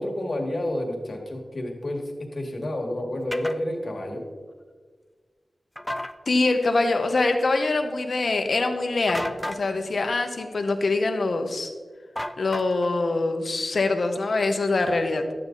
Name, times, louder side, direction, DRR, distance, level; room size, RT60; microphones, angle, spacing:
voice 1, 0.0-4.2, left 1 dB, 50° left, 1 dB, 2.1 m, -30 dB
sound 1, 3.3-3.6 5.8-6.1 9.1-9.6 12.2-12.9, left 1 dB, 10° left, 0.5 m, -32 dB
voice 2, 6.3-11.7 12.4-15.2, left 3 dB, 65° left, 5 dB, 1.1 m, -24 dB
11.5 x 8.8 x 4.0 m, 1.5 s
wide cardioid pair, 65°, 0 cm